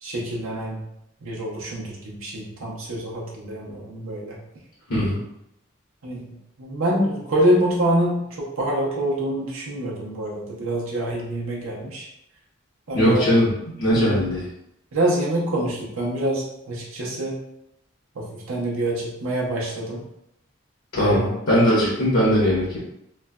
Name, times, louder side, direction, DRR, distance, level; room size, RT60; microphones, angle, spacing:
voice 1, 0.0-0.8 1.2-4.4 6.0-6.3 6.6-12.1 12.9-13.2 13.9-14.2 14.9-17.4 18.2-20.0 20.9-21.2, right 1 dB, 80° right, -3 dB, 0.6 m, -26 dB
voice 2, 12.9-14.4 20.9-22.8, equal, 90° left, -8 dB, 1.0 m, -20 dB
3.0 x 2.1 x 2.3 m, 0.81 s
head